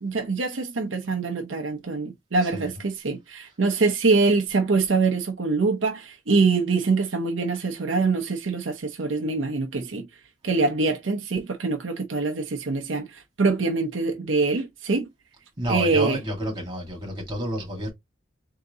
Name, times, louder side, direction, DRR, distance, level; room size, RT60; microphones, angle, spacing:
voice 1, 0.0-10.1 10.4-15.1 15.7-16.2, right 4 dB, 70° right, 0.7 m, -24 dB
voice 2, 15.6-17.9, equal, 25° right, 2.0 m, -29 dB
3.8 x 2.9 x 3.5 m
head